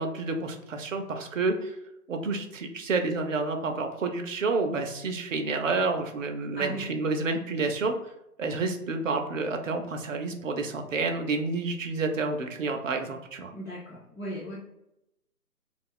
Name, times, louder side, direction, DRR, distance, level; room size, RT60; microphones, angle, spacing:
voice 1, 0.0-1.8 2.1-7.9 8.4-13.5, right 3 dB, 55° right, 5 dB, 0.6 m, -29 dB
voice 2, 6.5-6.9 13.5-14.6, equal, 5° left, -19 dB, 0.6 m, -37 dB
2.4 x 2.3 x 3.6 m, 0.84 s
figure-of-eight pair, 145°, 47 cm